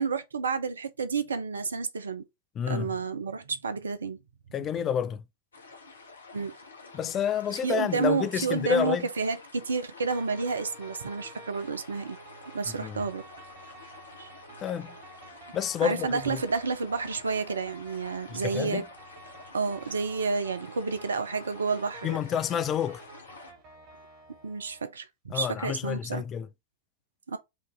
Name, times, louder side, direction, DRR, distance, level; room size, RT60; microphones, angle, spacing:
voice 1, 0.0-2.2 2.6-4.2 6.3-6.5 7.6-12.2 12.5-13.3 14.2-14.3 15.8-18.8 19.5-22.2 24.4-25.1 25.3-26.2 27.3-27.4, right 4 dB, 70° right, 0.6 m, -30 dB
voice 2, 2.6-2.9 4.5-5.2 6.9-9.1 12.8-13.1 14.6-15.0 15.5-16.4 18.3-18.8 22.0-23.0 25.3-26.5, left 8 dB, 30° left, 0.4 m, -29 dB
sound 1, 5.5-23.5, left 3 dB, 70° left, 0.9 m, -50 dB
sound 2, 10.1-24.8, right 3 dB, 40° right, 1.8 m, -50 dB
4.9 x 2.7 x 3.2 m
figure-of-eight pair, 90°, 0 cm